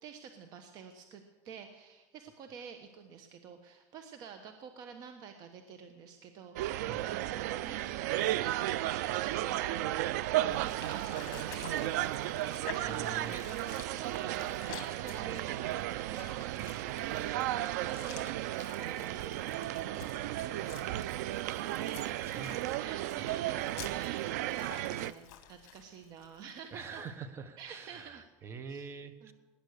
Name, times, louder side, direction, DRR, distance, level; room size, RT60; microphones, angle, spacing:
voice 1, 0.0-9.8 10.4-20.0 20.4-21.3 22.2-27.0 27.6-28.3 28.6-28.9 29.2-29.3, right 7 dB, 45° right, 7 dB, 1.2 m, -49 dB
sound 1, 6.6-25.1, right 14 dB, 85° right, 0.5 m, -34 dB
sound 2, 10.5-26.5, left 11 dB, 55° left, 2.3 m, -51 dB
voice 2, 12.8-13.5 21.8-23.3 26.7-29.3, right 5 dB, 30° right, 11 dB, 1.2 m, -45 dB
18.5 x 10.0 x 6.6 m, 1.2 s
supercardioid pair, 140°, 9 cm